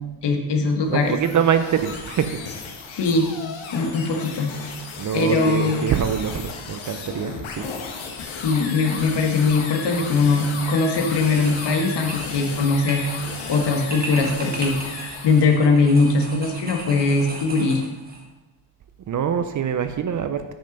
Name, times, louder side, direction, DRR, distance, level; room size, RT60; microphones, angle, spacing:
voice 1, 0.2-1.2 2.9-3.3 3.7-4.5 5.1-5.9 8.2-13.0 13.5-14.7 15.0-17.8, left 3 dB, 60° left, 3 dB, 1.4 m, -21 dB
sound 1, 0.9-15.5, left 5 dB, 90° left, 1.4 m, -35 dB
voice 2, 0.9-2.4 5.0-7.7 19.1-20.5, right 8 dB, 40° right, 9 dB, 0.5 m, -24 dB
sound 2, 10.3-10.6 11.0-18.2, right 2 dB, 20° right, 1.3 m, -37 dB
8.9 x 5.5 x 5.3 m, 1.1 s
cardioid pair, 165°, 46 cm